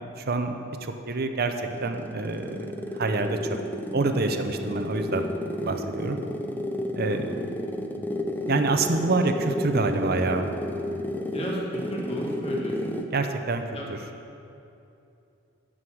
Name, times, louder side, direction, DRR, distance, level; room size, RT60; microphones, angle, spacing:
voice 1, 0.2-1.5 1.8-2.7 2.9-3.4 3.9-5.3 5.6-6.2 6.9-7.3 8.5-10.5 13.1-13.7, right 3 dB, 50° right, 7 dB, 0.7 m, -26 dB
sound 1, 1.4-13.2, left 1 dB, 10° left, 0.6 m, -32 dB
voice 2, 7.0-7.5 11.3-13.0 13.7-13.9, equal, 30° left, -3 dB, 2.0 m, -36 dB
9.5 x 6.4 x 7.8 m, 2.8 s
head